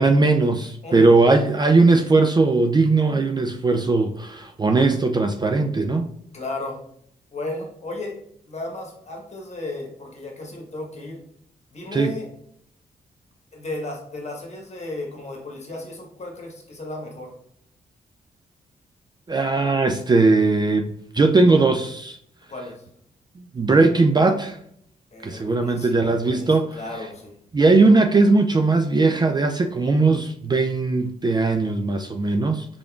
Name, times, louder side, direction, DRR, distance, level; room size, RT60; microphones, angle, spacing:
voice 1, 0.0-6.1 11.9-12.1 19.3-22.2 23.4-24.6 25.2-26.7 27.5-32.7, right 3 dB, 25° right, 6 dB, 0.4 m, -19 dB
voice 2, 0.8-1.2 6.3-6.8 7.3-8.2 8.5-11.2 11.7-12.3 13.5-17.3 22.5-22.8 25.1-27.3, left 2 dB, 40° left, 0 dB, 1.3 m, -34 dB
3.7 x 3.4 x 2.3 m, 0.68 s
supercardioid pair, 50°, 17 cm